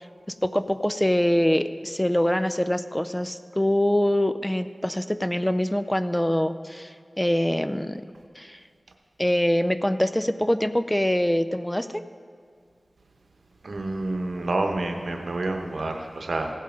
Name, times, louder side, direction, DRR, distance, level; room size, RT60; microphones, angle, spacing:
voice 1, 0.4-8.0 8.4-8.6 9.2-12.0, left 1 dB, 10° left, 11 dB, 0.4 m, -24 dB
voice 2, 13.6-16.5, right 2 dB, 90° right, 4 dB, 0.9 m, -28 dB
16.0 x 5.6 x 5.1 m, 2.2 s
wide cardioid pair, 60°, 0 cm